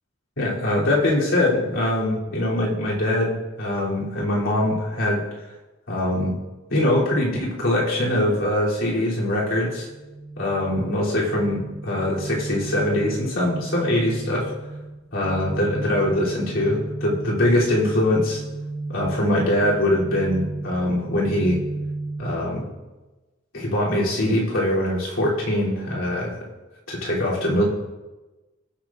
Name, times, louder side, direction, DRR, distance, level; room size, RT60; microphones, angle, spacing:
voice 1, 0.4-5.2 5.9-6.3 6.7-9.9 10.4-14.5 15.1-18.4 18.9-21.6 22.2-22.7 23.5-26.4 26.9-27.6, left 1 dB, 80° left, -6 dB, 3.0 m, -22 dB
sound 1, 9.8-22.6, right 2 dB, 65° right, 1.1 m, -34 dB
18.0 x 8.6 x 2.5 m, 1.2 s
head